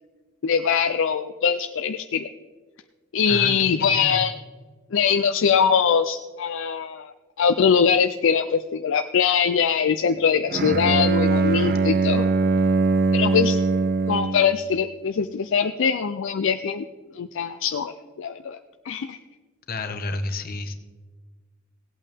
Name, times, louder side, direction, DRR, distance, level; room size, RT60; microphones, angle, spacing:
voice 1, 0.4-2.3 3.1-4.3 4.9-12.3 13.1-13.6 14.1-16.8 17.2-17.9 18.2-18.6 18.9-19.2, left 6 dB, 65° left, 9 dB, 0.4 m, -22 dB
voice 2, 3.3-4.2 19.7-20.7, left 2 dB, 45° left, 8 dB, 1.0 m, -31 dB
Bowed string instrument, 10.5-14.6, right 4 dB, 45° right, 0.5 m, -21 dB
17.5 x 8.4 x 3.5 m, 1.4 s
head